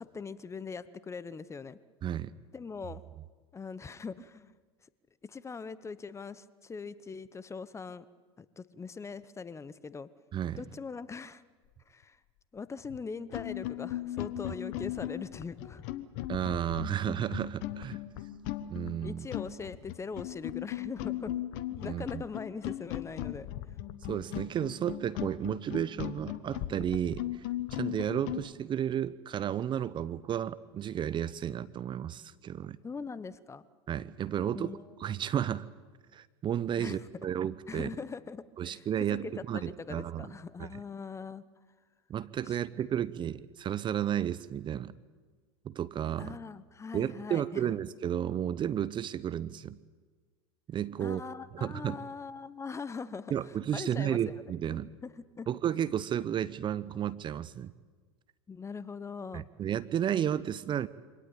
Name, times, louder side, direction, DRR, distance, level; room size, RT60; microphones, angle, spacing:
voice 1, 0.0-1.8 2.5-3.0 3.5-4.5 5.2-8.1 8.4-10.1 10.6-11.4 11.9-12.2 12.5-15.8 19.0-21.4 21.7-23.5 32.8-33.6 34.5-34.9 36.8-37.3 37.7-38.8 39.1-41.5 42.5-42.9 46.2-47.7 51.0-53.3 53.7-54.3 54.7-55.5 58.5-59.5, left 5 dB, 20° left, 17 dB, 1.0 m, -41 dB
voice 2, 2.0-2.3 10.3-10.6 16.3-18.0 18.7-19.3 21.8-22.2 24.0-27.4 27.7-32.8 33.9-34.7 35.0-35.6 36.1-37.9 38.6-40.4 42.1-44.9 45.6-46.4 46.9-49.8 50.7-51.2 51.5-52.0 53.3-54.9 55.5-57.7 59.3-60.9, right 10 dB, 30° right, 17 dB, 0.8 m, -32 dB
sound 1, 12.8-13.0 13.3-28.5, left 14 dB, 60° left, 1.3 m, -37 dB
24.5 x 18.0 x 8.7 m, 1.4 s
hypercardioid pair, 85°, 15 cm